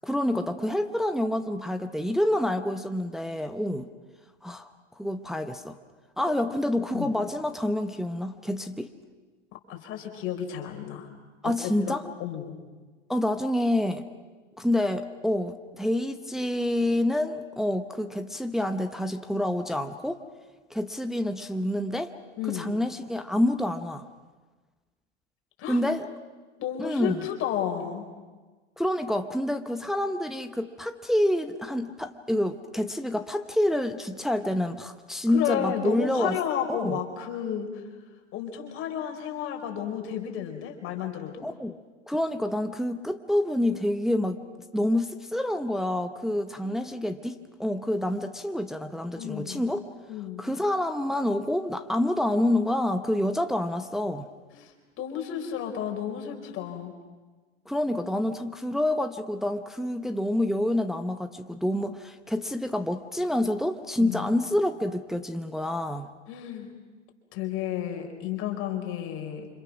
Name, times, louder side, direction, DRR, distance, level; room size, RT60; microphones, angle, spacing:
voice 1, 0.0-3.9 4.4-4.7 5.0-5.8 6.2-8.9 11.4-12.1 13.1-14.0 14.6-20.2 20.7-22.1 22.5-24.1 25.7-26.1 26.8-27.3 28.8-36.4 36.7-37.0 41.4-41.8 42.1-44.4 44.7-49.8 50.4-54.3 57.7-66.1, left 1 dB, ahead, 8 dB, 0.8 m, -27 dB
voice 2, 9.7-11.1 11.4-12.6 22.4-22.7 25.6-25.8 26.6-28.1 35.3-37.8 38.3-41.4 46.6-46.9 49.2-49.6 50.1-50.4 54.5-54.7 55.0-56.9 64.0-64.3 66.3-66.7 67.3-69.5, left 9 dB, 35° left, 3 dB, 4.3 m, -32 dB
29.0 x 26.0 x 6.1 m, 1.3 s
hypercardioid pair, 100°, 36 cm